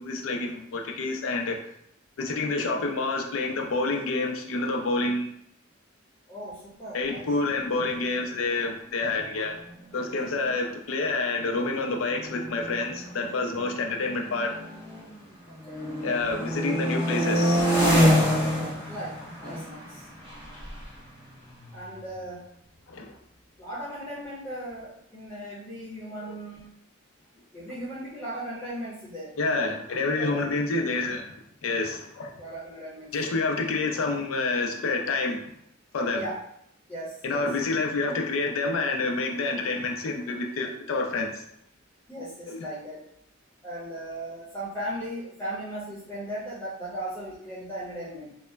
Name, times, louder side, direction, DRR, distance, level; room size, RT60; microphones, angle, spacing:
voice 1, 0.0-1.6 2.2-5.3 6.9-9.6 9.9-14.5 16.0-17.7 22.9-23.2 26.2-26.4 29.4-31.2 31.6-32.3 33.1-35.4 35.9-36.2 37.2-41.4 42.5-42.7, left 3 dB, 80° left, 3 dB, 0.4 m, -28 dB
voice 2, 6.3-7.2 15.5-15.9 18.9-20.1 21.7-22.4 23.6-26.6 27.5-29.3 30.1-30.4 32.4-33.1 36.1-36.3 36.9-37.5 42.1-43.0 43.6-48.4, right 1 dB, 10° left, -10 dB, 0.9 m, -37 dB
sound 1, 9.8-9.9 10.2-10.5 11.3-15.2 15.6-22.2, equal, 25° right, 1.0 m, -27 dB
2.9 x 2.1 x 2.3 m, 0.73 s
head